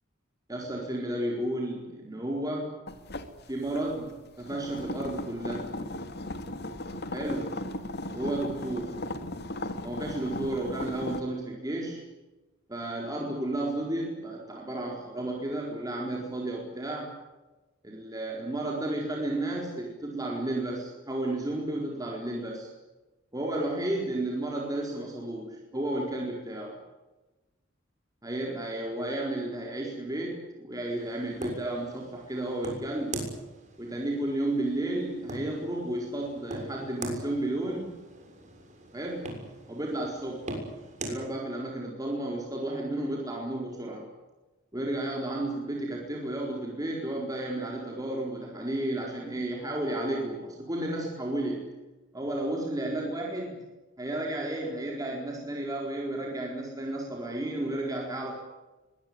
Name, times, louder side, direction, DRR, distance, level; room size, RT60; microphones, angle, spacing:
voice 1, 0.5-2.8 3.5-5.8 7.1-7.6 8.1-9.1 9.8-12.1 12.7-17.1 17.8-22.7 23.3-26.8 28.2-33.3 33.8-38.0 38.9-39.3 39.7-40.5 41.1-44.1 44.7-51.7 52.1-53.6 54.0-58.3, right 1 dB, 20° right, -1 dB, 4.4 m, -32 dB
sound 1, 2.9-11.2, left 1 dB, 55° left, 2.4 m, -37 dB
sound 2, 30.9-41.2, right 2 dB, 40° right, 6.8 m, -41 dB
23.5 x 19.5 x 9.6 m, 1.1 s
head